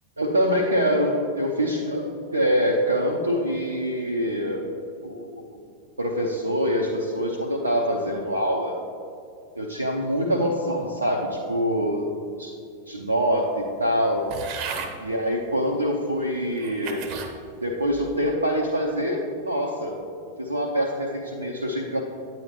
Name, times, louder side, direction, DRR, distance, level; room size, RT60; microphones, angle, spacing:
voice 1, 0.2-4.6 5.0-5.6 6.0-8.7 9.5-12.1 12.4-12.5 12.9-14.3 15.0-17.1 17.6-20.0 20.4-22.0, equal, 80° right, -2 dB, 0.7 m, -25 dB
sound 1, 14.3-14.9 15.7-15.8 16.5-17.3 17.9-18.3, right 6 dB, 40° right, 1.0 m, -34 dB
9.3 x 9.2 x 2.9 m, 2.4 s
figure-of-eight pair, 90°, 0 cm